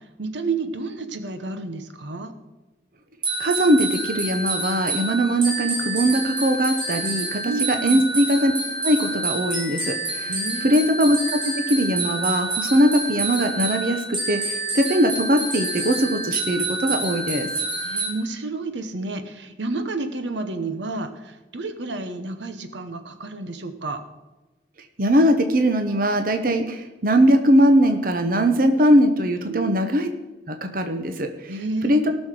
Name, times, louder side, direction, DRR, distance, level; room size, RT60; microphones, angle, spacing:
voice 1, 0.2-2.3 7.4-8.0 10.3-10.8 17.8-24.0 28.8-28.9 29.5-29.7 31.5-32.2, right 3 dB, 75° right, 9 dB, 1.0 m, -30 dB
sound 1, 3.2-18.1, right 2 dB, 25° right, 2.9 m, -28 dB
voice 2, 3.4-8.5 8.8-10.3 10.6-17.5 25.0-30.1 30.5-31.5 31.8-32.2, equal, 50° right, 6 dB, 0.9 m, -20 dB
18.5 x 6.4 x 4.9 m, 1.1 s
head